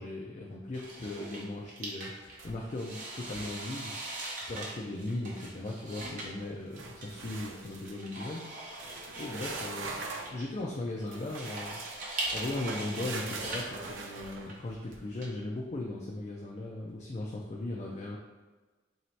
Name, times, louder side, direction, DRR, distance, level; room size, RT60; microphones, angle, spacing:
voice 1, 0.0-3.9 4.5-8.5 9.2-11.8 12.3-18.2, left 2 dB, 35° left, -2 dB, 0.4 m, -38 dB
sound 1, 0.7-15.3, right 2 dB, 45° right, 0.7 m, -41 dB
sound 2, 2.4-2.9 3.2-3.6 6.7-8.0 8.7-10.4 11.1-14.9, right 3 dB, 85° right, 0.5 m, -42 dB
3.0 x 2.7 x 4.4 m, 1.3 s
head